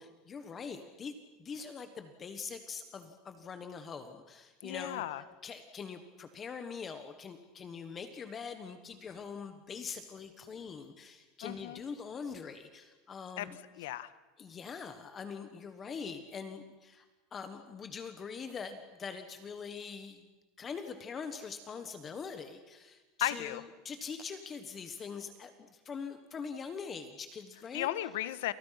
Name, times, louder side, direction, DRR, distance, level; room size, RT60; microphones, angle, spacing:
voice 1, 0.0-5.0 5.4-13.6 14.4-17.0 17.3-20.3 20.6-27.9, left 5 dB, 20° left, 8 dB, 1.4 m, -43 dB
voice 2, 4.6-5.2 11.4-11.8 13.4-13.5 13.8-14.1 23.2-23.6 27.7-28.5, left 14 dB, 85° left, 14 dB, 1.5 m, -35 dB
29.5 x 28.0 x 5.9 m, 1.1 s
supercardioid pair, 180°, 0 cm